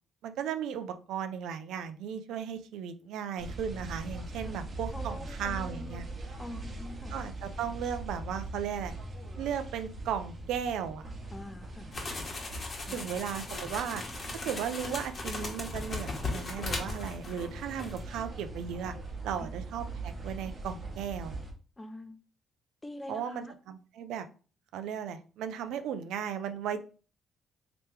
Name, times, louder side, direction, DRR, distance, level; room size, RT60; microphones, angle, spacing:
voice 1, 0.2-6.1 7.1-8.9 9.4-11.0 12.9-14.0 14.4-18.9 19.2-21.4 23.1-24.3 24.7-26.8, right 8 dB, 85° right, 9 dB, 0.4 m, -36 dB
sound 1, 3.4-21.5, right 2 dB, 40° right, 1.0 m, -42 dB
voice 2, 4.9-5.9 6.4-7.1 11.3-11.9 12.9-13.1 19.4-19.5 21.8-22.2 22.8-23.5, left 1 dB, 15° left, 7 dB, 0.6 m, -44 dB
sound 2, 11.9-17.5 17.8-18.0, left 3 dB, 40° left, 1.2 m, -38 dB
3.3 x 2.9 x 3.3 m, 0.37 s
cardioid pair, 90°, 0 cm